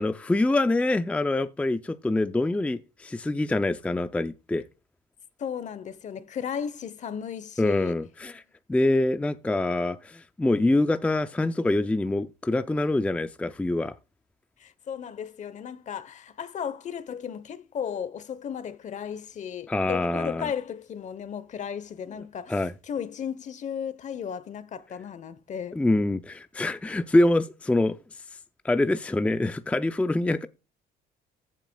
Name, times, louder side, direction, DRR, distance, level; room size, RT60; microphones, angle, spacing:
voice 1, 0.0-4.6 7.6-8.4 8.7-13.9 19.7-20.5 22.5-22.7 25.7-28.0 28.6-30.5, left 2 dB, 10° left, 0.5 m, -25 dB
voice 2, 5.4-8.0 14.6-25.8, left 8 dB, 45° left, 0.9 m, -35 dB
15.0 x 7.4 x 2.3 m
cardioid pair, 110°, 17 cm